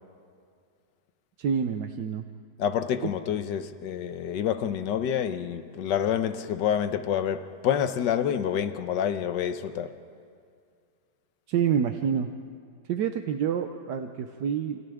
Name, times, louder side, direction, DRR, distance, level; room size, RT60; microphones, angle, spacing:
voice 1, 1.4-2.2 11.5-12.3 12.9-14.8, right 7 dB, 80° right, 1.4 m, -27 dB
voice 2, 2.6-9.9, left 9 dB, 90° left, 1.5 m, -28 dB
29.0 x 28.0 x 3.5 m
omnidirectional pair, 1.8 m